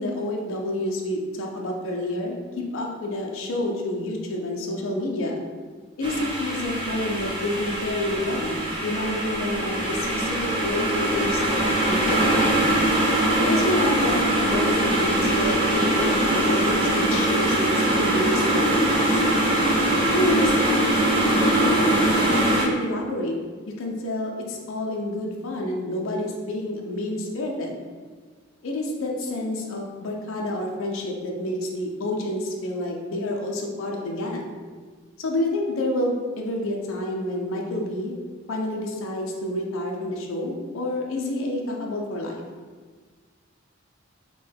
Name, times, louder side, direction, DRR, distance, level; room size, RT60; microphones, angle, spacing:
voice 1, 0.0-5.4 6.0-12.7 13.3-19.2 20.1-21.0 21.3-23.3 23.8-27.8 28.6-34.6 35.2-38.1 38.5-42.4, left 1 dB, 70° left, 0 dB, 0.4 m, -28 dB
sound 1, 6.0-22.6, right 1 dB, 20° right, 0.5 m, -22 dB
3.6 x 2.2 x 3.4 m, 1.5 s
head